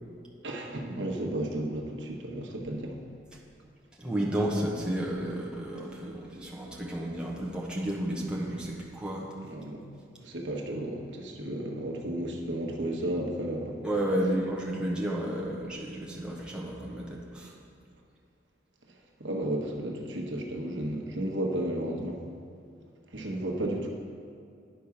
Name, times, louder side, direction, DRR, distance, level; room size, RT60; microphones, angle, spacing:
voice 1, 0.4-2.9 9.5-9.8 10.2-13.7 19.2-22.2 23.1-23.9, right 1 dB, 85° right, 1 dB, 1.1 m, -33 dB
voice 2, 4.0-9.3 13.8-17.5, right 1 dB, 5° right, -4 dB, 1.1 m, -32 dB
10.0 x 4.8 x 5.8 m, 2.4 s
head